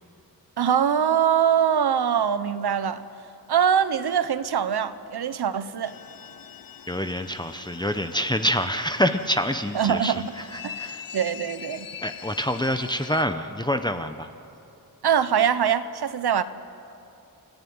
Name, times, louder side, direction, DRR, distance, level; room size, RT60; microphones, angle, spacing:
voice 1, 0.6-3.0 3.5-5.9 9.7-10.3 10.6-11.9 15.0-16.4, right 8 dB, 80° right, 13 dB, 1.0 m, -23 dB
sound 1, 5.8-13.2, left 8 dB, 60° left, 0.7 m, -42 dB
voice 2, 6.9-11.1 12.0-14.3, equal, 10° left, 7 dB, 0.8 m, -26 dB
28.5 x 15.0 x 9.5 m, 2.7 s
wide cardioid pair, 105°, 38 cm